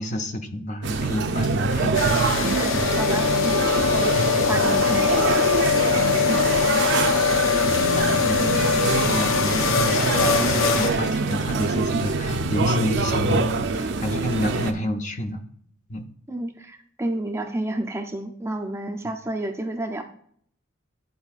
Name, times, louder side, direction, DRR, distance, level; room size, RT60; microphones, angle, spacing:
voice 1, 0.0-2.2 2.7-2.9 7.9-15.4 15.9-16.1 19.0-19.2, equal, 40° left, 6 dB, 0.6 m, -29 dB
sound 1, 0.8-14.7, right 3 dB, 60° right, 0.5 m, -24 dB
sound 2, 1.4-12.0, left 3 dB, 70° left, 1.2 m, -45 dB
sound 3, 1.9-10.9, left 7 dB, 85° left, 0.5 m, -22 dB
voice 2, 2.9-4.1 4.5-5.2 16.3-20.0, right 1 dB, 15° right, 5 dB, 0.5 m, -30 dB
10.5 x 4.2 x 2.4 m, 0.62 s
head